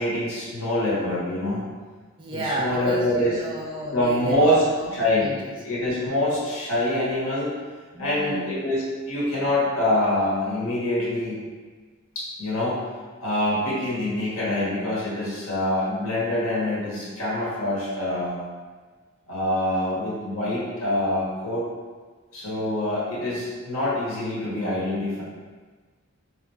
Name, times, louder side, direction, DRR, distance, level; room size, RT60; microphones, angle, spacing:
voice 1, 0.0-1.6 2.3-3.4 3.9-4.6 4.9-5.3 5.6-7.5 8.0-11.4 12.1-12.8 13.2-18.4 19.3-21.7 22.3-25.2, left 1 dB, 80° left, -7 dB, 1.5 m, -25 dB
voice 2, 2.2-5.6 6.0-6.3 7.9-8.5, right 1 dB, 25° right, -3 dB, 0.5 m, -32 dB
3.9 x 3.3 x 3.3 m, 1.4 s
head